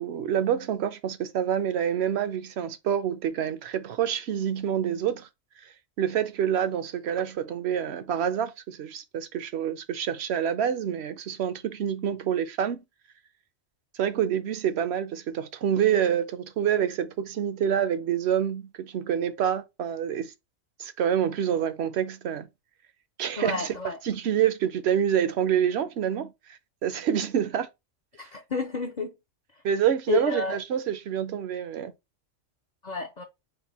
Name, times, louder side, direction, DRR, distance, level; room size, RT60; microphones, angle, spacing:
voice 1, 0.0-5.3 5.6-5.7 6.0-12.8 13.9-20.3 20.8-22.5 23.2-23.7 24.0-27.7 29.6-31.9, right 9 dB, 65° right, 0.8 m, -27 dB
voice 2, 23.4-24.0 28.2-29.1 29.5-29.6 30.1-30.6 32.8-33.2, left 5 dB, 45° left, 0.6 m, -30 dB
5.2 x 2.2 x 4.1 m
omnidirectional pair, 1.3 m